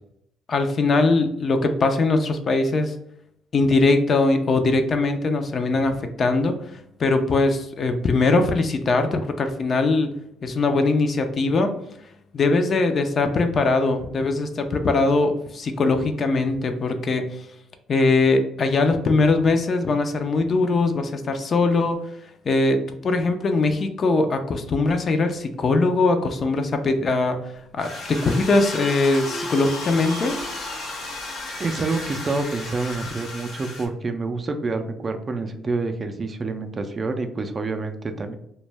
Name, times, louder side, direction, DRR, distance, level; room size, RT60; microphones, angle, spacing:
voice 1, 0.5-2.9 3.5-6.5 7.0-10.1 10.4-11.7 12.3-17.4 17.9-22.0 22.5-27.4 27.7-30.3, left 3 dB, 50° left, 7 dB, 0.4 m, -21 dB
sound 1, 27.8-33.9, left 2 dB, 65° left, 0.8 m, -33 dB
voice 2, 31.6-38.4, right 3 dB, 35° right, 7 dB, 0.3 m, -27 dB
2.1 x 2.0 x 3.2 m, 0.75 s
supercardioid pair, 65°, 0 cm